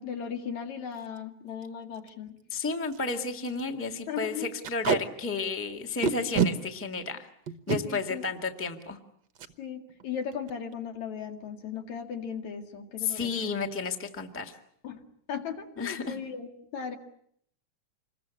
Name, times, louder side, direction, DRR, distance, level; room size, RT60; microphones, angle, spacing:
voice 1, 0.0-2.4 3.7-4.5 7.8-8.2 9.6-13.5 14.8-15.0 15.3-17.0, left 7 dB, 70° left, 5 dB, 3.4 m, -37 dB
Packing tape duct tape, 1.0-1.2 1.6-1.7 1.9-2.1 2.6-2.7 2.9-3.1 3.4-3.6 4.6-5.0 6.0-6.5 7.5-7.8 9.4-9.5 9.9-10.1 10.3-10.7, right 6 dB, 55° right, 1.3 m, -27 dB
voice 2, 2.5-7.3 7.7-9.0 13.0-14.6 15.8-16.2, left 4 dB, 5° left, 4 dB, 1.3 m, -32 dB
27.0 x 21.5 x 8.4 m, 0.67 s
omnidirectional pair, 3.4 m